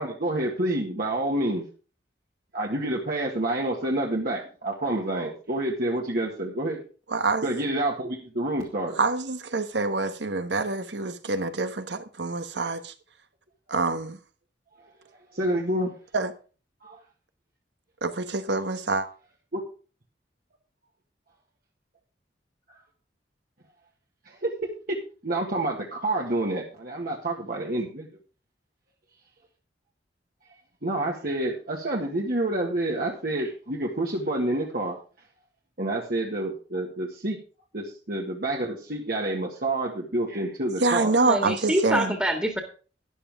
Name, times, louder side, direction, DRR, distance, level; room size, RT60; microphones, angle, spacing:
voice 1, 0.0-1.6 2.5-6.8 7.4-8.9 15.3-15.9 16.8-17.0 19.5-19.6 24.2-24.5 25.2-28.1 30.8-35.0 35.8-37.4 37.7-41.1, right 1 dB, 55° right, 1.8 m, -28 dB
voice 2, 7.1-7.5 9.0-12.9 13.7-14.2 16.1-16.3 18.0-19.1 40.8-42.1, right 3 dB, 75° right, 1.2 m, -26 dB
voice 3, 41.2-42.6, equal, 10° right, 1.8 m, -25 dB
13.0 x 11.0 x 3.6 m
head